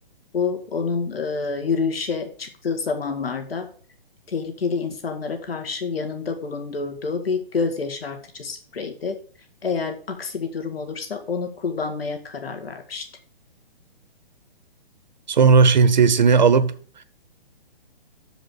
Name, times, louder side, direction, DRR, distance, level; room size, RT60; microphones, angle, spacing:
voice 1, 0.3-3.7 4.3-9.2 9.6-13.0, left 5 dB, 75° left, 2.0 m, -28 dB
voice 2, 15.3-16.7, right 5 dB, 50° right, 0.8 m, -15 dB
7.2 x 5.1 x 6.4 m
hypercardioid pair, 180°, 30 cm